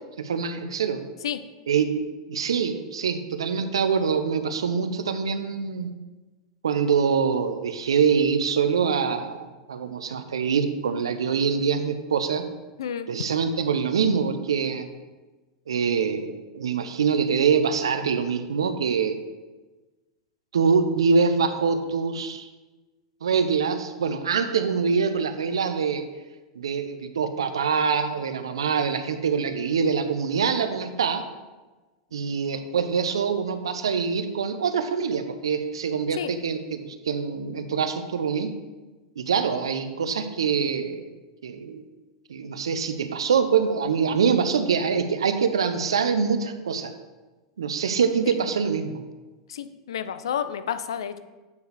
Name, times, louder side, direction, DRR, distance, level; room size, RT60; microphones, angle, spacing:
voice 1, 0.2-1.0 1.7-5.9 6.6-12.5 13.1-14.9 15.7-19.2 20.5-22.5 23.2-26.0 26.6-31.2 32.1-38.5 39.2-41.1 41.4-41.8 42.3-46.9 47.6-49.0, right 6 dB, 85° right, 9 dB, 0.5 m, -24 dB
voice 2, 49.5-51.2, left 8 dB, 80° left, 12 dB, 0.4 m, -30 dB
8.1 x 4.6 x 3.3 m, 1.2 s
hypercardioid pair, 105°, 3 cm